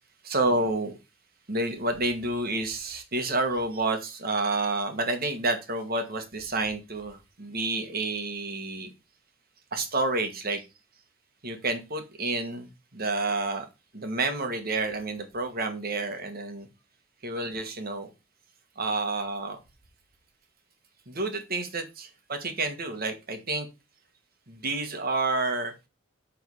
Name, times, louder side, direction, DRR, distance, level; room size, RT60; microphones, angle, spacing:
voice 1, 0.2-0.9 1.5-8.9 9.7-10.6 11.4-13.7 13.9-16.7 17.2-18.1 18.7-19.6 21.1-23.7 24.5-25.7, right 2 dB, 45° right, 6 dB, 1.6 m, -29 dB
7.9 x 3.9 x 5.4 m, 0.26 s
head